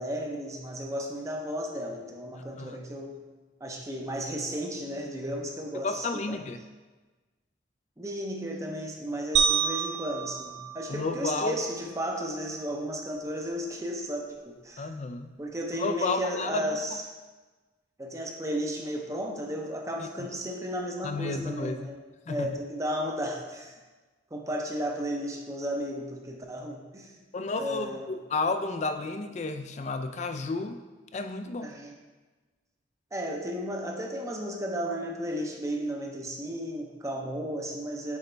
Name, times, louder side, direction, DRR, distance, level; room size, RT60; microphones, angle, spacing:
voice 1, 0.0-3.2 3.6-6.4 8.0-14.9 15.4-17.0 18.0-22.0 22.3-23.8 24.3-27.1 27.6-28.2 31.6-31.9 33.1-38.2, equal, 15° right, 1 dB, 0.6 m, -34 dB
voice 2, 5.8-6.6 10.9-11.6 14.8-15.3 15.8-16.6 20.0-20.1 21.0-21.9 22.3-22.6 27.3-30.8 31.1-31.7, left 3 dB, 40° left, 8 dB, 0.4 m, -32 dB
sound 1, 9.4-11.7, right 7 dB, 65° right, 0.5 m, -29 dB
7.9 x 4.1 x 3.3 m, 1.3 s
head